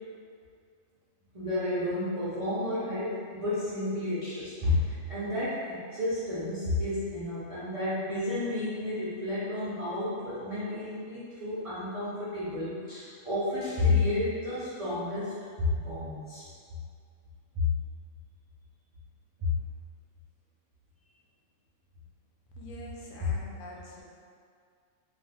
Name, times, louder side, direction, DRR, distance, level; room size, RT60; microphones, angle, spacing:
voice 1, 1.3-15.3 15.6-16.5 17.5-17.7 19.4-19.5, left 2 dB, 60° right, -13 dB, 0.3 m, -31 dB
voice 2, 22.6-24.0, equal, 70° left, -3 dB, 0.9 m, -44 dB
2.4 x 2.3 x 3.3 m, 2.3 s
omnidirectional pair, 1.4 m